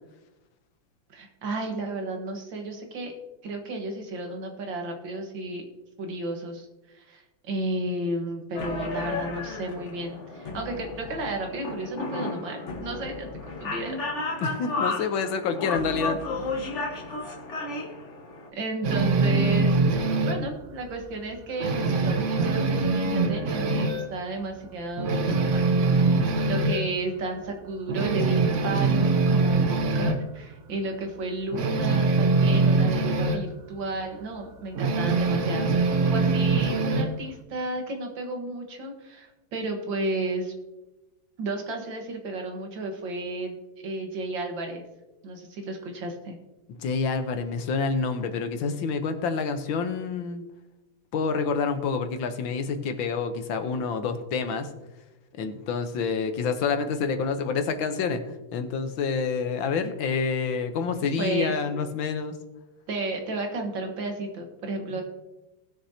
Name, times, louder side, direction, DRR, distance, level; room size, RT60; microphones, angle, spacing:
voice 1, 1.1-3.1 3.4-5.6 6.0-14.0 18.5-25.7 26.2-40.5 41.4-43.6 43.8-44.9 45.2-46.4 61.2-61.6 62.9-65.0, right 2 dB, 75° right, 3 dB, 2.2 m, -33 dB
sound 1, 8.5-18.5, left 3 dB, 40° left, 1.5 m, -33 dB
voice 2, 14.4-16.5 46.8-50.4 51.1-54.7 55.4-62.3 64.9-65.0, left 5 dB, 80° left, 8 dB, 1.7 m, -28 dB
sound 2, 18.8-20.5 20.9-21.0 21.4-24.1 24.5-24.6 25.0-26.9 27.4-27.5 27.9-30.2 31.5-33.4 34.8-37.2, right 3 dB, 50° right, 1.0 m, -23 dB
19.0 x 6.6 x 2.8 m, 1.0 s
omnidirectional pair, 2.1 m